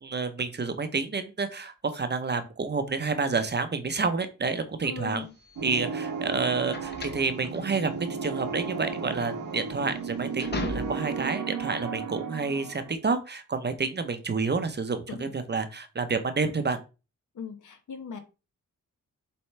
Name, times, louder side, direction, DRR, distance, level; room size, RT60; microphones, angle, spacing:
voice 1, 0.0-5.2 5.6-7.9 8.2-16.8, right 4 dB, 35° right, 9 dB, 0.8 m, -29 dB
voice 2, 4.8-5.3 15.1-15.3 17.3-18.2, left 5 dB, 70° left, 7 dB, 1.3 m, -39 dB
sound 1, 5.3-11.3, left 2 dB, 30° left, 1.0 m, -38 dB
sound 2, 5.6-12.9, right 5 dB, 75° right, 1.2 m, -34 dB
7.2 x 4.5 x 3.3 m, 0.30 s
wide cardioid pair, 170°, 32 cm